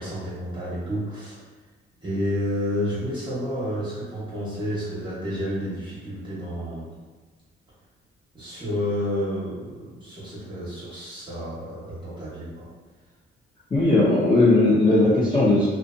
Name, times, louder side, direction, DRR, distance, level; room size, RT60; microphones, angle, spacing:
voice 1, 0.0-1.4 2.0-6.9 8.3-12.7, equal, 25° right, -9 dB, 0.9 m, -30 dB
voice 2, 13.7-15.7, left 2 dB, 20° left, -9 dB, 0.6 m, -18 dB
2.5 x 2.3 x 2.5 m, 1.4 s
cardioid pair, 90°, 20 cm